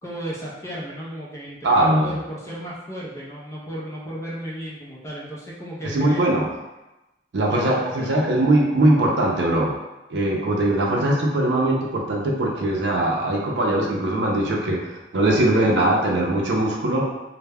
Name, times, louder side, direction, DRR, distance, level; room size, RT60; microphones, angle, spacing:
voice 1, 0.0-6.3 7.5-8.4, equal, 15° left, -6 dB, 0.5 m, -34 dB
voice 2, 1.6-2.2 5.8-6.5 7.3-9.7 10.1-17.1, right 1 dB, 75° right, -1 dB, 0.5 m, -21 dB
2.2 x 2.0 x 3.3 m, 1.0 s
head